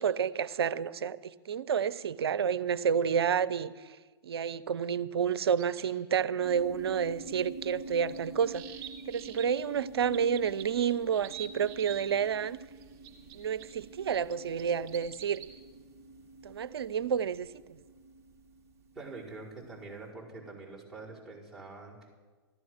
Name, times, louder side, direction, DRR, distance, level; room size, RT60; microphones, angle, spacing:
voice 1, 0.0-3.7 4.2-8.6 9.1-12.6 13.3-15.4 16.4-17.5, right 7 dB, 70° right, 0.7 m, -30 dB
sound 1, 5.6-5.9 7.8-9.5 10.1-12.1 12.8-13.7 14.3-15.5, right 11 dB, 40° right, 3.1 m, -45 dB
sound 2, 6.4-19.8, right 2 dB, 20° right, 1.5 m, -47 dB
voice 2, 18.9-22.1, right 3 dB, 5° right, 4.9 m, -45 dB
15.0 x 13.0 x 6.5 m
hypercardioid pair, 120°, 13 cm